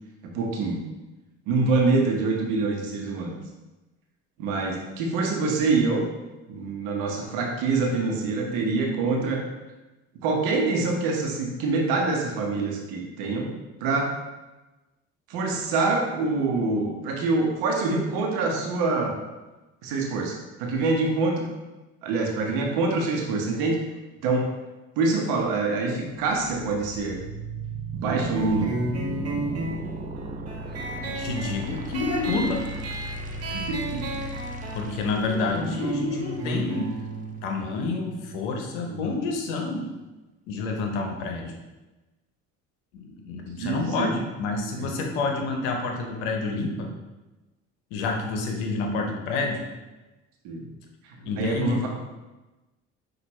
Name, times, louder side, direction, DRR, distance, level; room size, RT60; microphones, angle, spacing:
voice 1, 0.3-0.8 1.5-3.3 4.4-6.0 6.5-9.4 10.2-13.5 13.8-14.1 15.3-19.2 19.8-21.5 22.0-23.8 24.2-24.5 25.0-27.2 27.9-28.7 31.3-31.5 33.5-34.2 38.9-39.0 43.6-44.2 44.8-44.9 50.4-50.7 51.2-51.9, right 3 dB, 75° right, 0 dB, 0.9 m, -25 dB
sound 1, 26.1-38.1, right 3 dB, 25° right, 0.6 m, -37 dB
sound 2, 28.3-39.5, right 1 dB, 45° right, 0.9 m, -33 dB
voice 2, 31.0-32.6 34.7-36.9 37.4-39.9 40.5-41.5 42.9-46.9 47.9-49.6 51.3-51.9, left 3 dB, 85° left, 2 dB, 0.8 m, -28 dB
6.0 x 2.5 x 3.0 m, 1.1 s
supercardioid pair, 65°, 34 cm